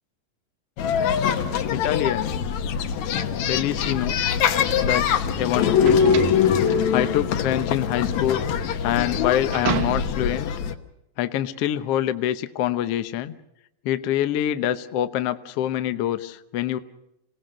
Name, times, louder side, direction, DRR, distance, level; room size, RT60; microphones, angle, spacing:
sound 1, 0.8-10.7, left 7 dB, 65° left, 2.2 m, -23 dB
voice 1, 1.7-2.4 3.4-4.2 4.8-6.3 6.9-8.5 8.8-10.5 11.2-13.3 13.8-16.8, left 12 dB, 85° left, 11 dB, 1.3 m, -25 dB
sound 2, 4.8-10.4, right 9 dB, 90° right, 3.0 m, -33 dB
27.5 x 18.0 x 6.5 m, 0.86 s
omnidirectional pair, 4.1 m